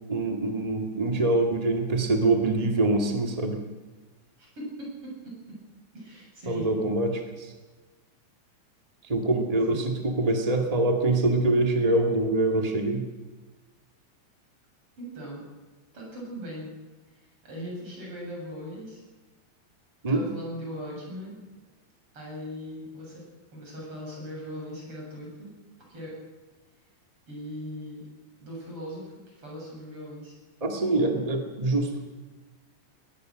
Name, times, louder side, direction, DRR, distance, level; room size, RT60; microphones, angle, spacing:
voice 1, 0.1-3.6 6.5-7.5 9.0-13.0 20.0-20.2 30.6-32.1, right 2 dB, 50° right, 3 dB, 0.4 m, -24 dB
voice 2, 4.4-5.6 5.9-6.7 9.7-9.8 15.0-15.5 15.9-16.7 17.1-19.0 20.1-21.4 22.1-23.2 23.5-25.5 25.9-26.1 27.3-28.0 28.4-30.3, equal, 30° right, -2 dB, 8.5 m, -39 dB
21.5 x 18.5 x 6.5 m, 1.2 s
omnidirectional pair, 5.0 m